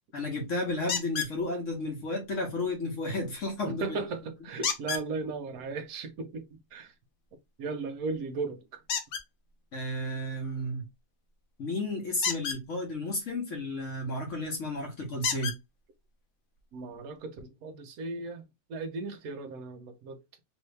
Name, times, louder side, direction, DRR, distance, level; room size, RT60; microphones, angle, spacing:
voice 1, 0.1-4.0 9.7-10.9 11.6-15.6, left 1 dB, 50° left, 1.1 m, -32 dB
sound 1, 0.9-1.3 4.6-5.1 8.9-9.2 12.1-12.6 14.3-14.4 15.2-15.6 16.6-16.7 17.2-17.3, left 6 dB, 80° left, 0.6 m, -31 dB
voice 2, 3.6-6.9 7.6-8.8 16.7-18.4 18.7-20.2, right 4 dB, 65° right, 1.0 m, -36 dB
3.1 x 2.7 x 3.2 m
omnidirectional pair, 2.0 m